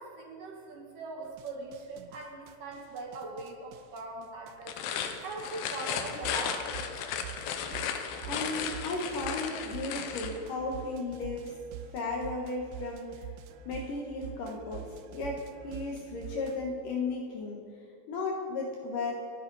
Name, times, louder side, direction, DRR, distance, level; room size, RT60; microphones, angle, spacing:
voice 1, 0.0-4.8 5.2-6.7, right 3 dB, 60° right, 0 dB, 2.7 m, -41 dB
sound 1, 1.2-16.7, right 10 dB, 80° right, 2.7 m, -46 dB
sound 2, 4.6-10.4, left 8 dB, 85° left, 3.0 m, -35 dB
voice 2, 8.2-11.6 11.9-13.2 13.7-17.6 18.1-19.1, left 3 dB, 60° left, 0 dB, 2.5 m, -35 dB
28.0 x 10.0 x 4.1 m, 2.3 s
omnidirectional pair, 4.9 m